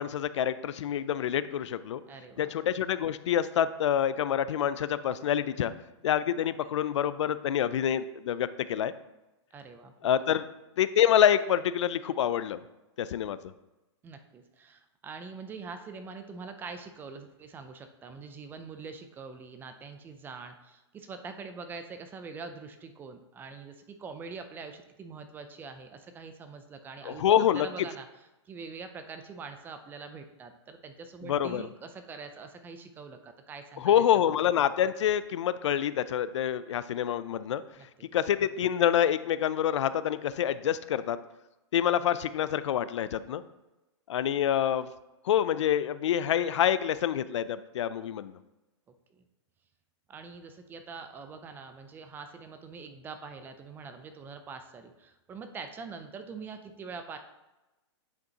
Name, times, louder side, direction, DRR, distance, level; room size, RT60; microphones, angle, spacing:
voice 1, 0.0-2.0 2.4-5.7 6.0-8.9 10.0-10.5 10.8-12.6 13.0-13.4 27.1-27.7 31.2-31.6 33.8-37.6 38.1-41.2 41.7-43.4 44.1-44.9 45.2-48.4, left 10 dB, 75° left, 15 dB, 0.4 m, -27 dB
voice 2, 2.1-2.5 9.5-9.9 10.3-10.4 14.0-27.2 27.5-28.1 28.5-34.0 37.8-38.1 49.1-49.2 50.1-57.2, right 5 dB, 15° right, 8 dB, 0.4 m, -44 dB
9.2 x 5.2 x 2.8 m, 1.0 s
hypercardioid pair, 145°, 15 cm